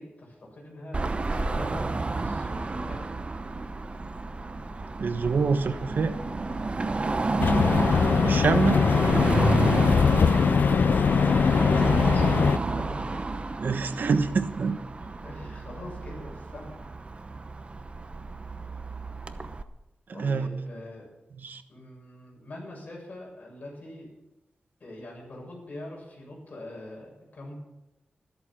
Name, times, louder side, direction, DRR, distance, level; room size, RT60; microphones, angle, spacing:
voice 1, 0.0-3.1 7.0-7.2 10.1-11.1 11.4-13.3 13.8-14.2 15.0-16.8 20.1-21.1 21.7-24.1 24.8-27.5, left 1 dB, 50° left, -1 dB, 7.2 m, -42 dB
Car passing by / Traffic noise roadway noise / Engine, 0.9-19.6, right 3 dB, 35° right, 0.9 m, -31 dB
voice 2, 5.0-6.2 8.2-8.8 13.6-14.8 20.2-20.5 21.4-21.6, right 5 dB, 70° right, 9 dB, 1.1 m, -25 dB
sound 1, 7.4-12.6, left 6 dB, 70° left, 0.4 m, -21 dB
14.0 x 13.0 x 5.9 m, 0.94 s
wide cardioid pair, 125°, 3 cm